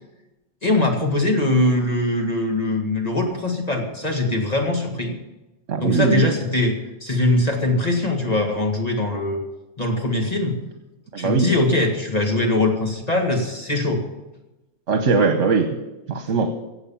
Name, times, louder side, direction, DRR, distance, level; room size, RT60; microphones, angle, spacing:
voice 1, 0.6-5.1 5.8-9.4 9.8-10.6 11.2-14.0, left 2 dB, 30° left, 1 dB, 2.0 m, -22 dB
voice 2, 5.7-6.3 11.1-11.5 14.9-15.7 16.1-16.5, right 4 dB, 70° right, 6 dB, 1.4 m, -20 dB
16.0 x 8.0 x 7.1 m, 1.0 s
omnidirectional pair, 1.3 m